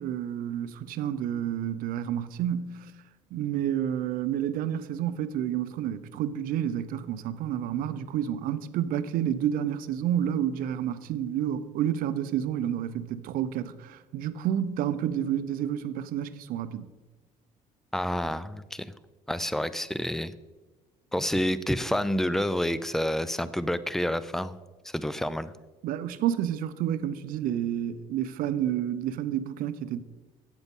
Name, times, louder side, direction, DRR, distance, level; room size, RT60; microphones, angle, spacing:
voice 1, 0.0-2.9 3.3-16.9 25.8-30.0, right 10 dB, 70° right, 0.5 m, -30 dB
voice 2, 17.9-18.9 19.3-20.3 21.1-24.6 24.8-25.5, equal, ahead, 0.3 m, -28 dB
8.2 x 7.9 x 3.7 m
cardioid pair, 105°, 15 cm